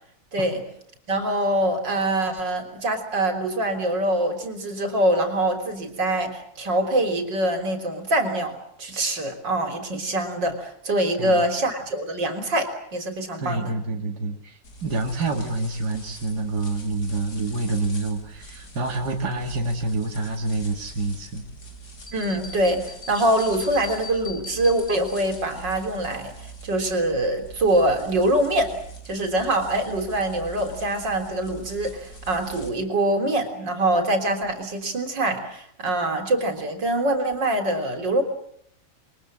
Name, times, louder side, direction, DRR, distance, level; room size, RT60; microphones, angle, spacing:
voice 1, 0.3-0.7 1.1-13.7 22.1-28.8 29.1-38.2, right 1 dB, 90° right, 6 dB, 4.2 m, -24 dB
voice 2, 13.4-21.4, right 2 dB, 65° right, 1 dB, 2.8 m, -27 dB
sound 1, 14.6-32.7, right 2 dB, 60° left, 4.3 m, -43 dB
sound 2, 22.1-25.4, left 3 dB, 20° left, 3.0 m, -41 dB
28.0 x 23.0 x 7.7 m, 0.68 s
omnidirectional pair, 1.9 m